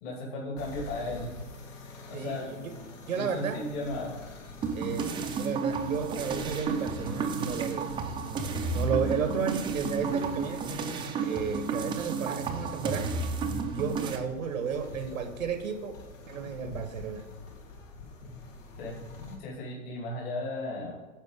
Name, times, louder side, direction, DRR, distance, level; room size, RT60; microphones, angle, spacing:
voice 1, 0.0-1.3 2.1-2.4 3.1-4.1 18.8-19.0 19.4-20.9, left 2 dB, 45° left, -2 dB, 2.6 m, -35 dB
sound 1, 0.6-19.4, left 3 dB, 65° left, 2.0 m, -46 dB
voice 2, 2.1-3.7 4.7-7.9 8.2-10.7 11.2-13.4 13.7-16.0 16.3-17.3, right 6 dB, 80° right, 8 dB, 1.3 m, -33 dB
sound 2, 4.6-14.2, right 4 dB, 10° right, 0.6 m, -32 dB
10.5 x 4.7 x 4.8 m, 1.3 s
hypercardioid pair, 120°, 40 cm